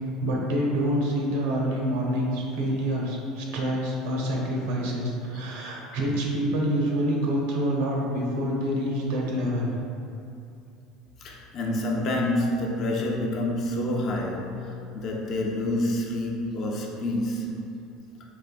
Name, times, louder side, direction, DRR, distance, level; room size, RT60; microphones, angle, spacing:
voice 1, 0.2-9.7, equal, 75° right, -2 dB, 0.6 m, -27 dB
voice 2, 11.2-17.6, left 1 dB, 50° left, -1 dB, 0.5 m, -28 dB
3.9 x 2.6 x 2.3 m, 2.6 s
supercardioid pair, 90°, 0 cm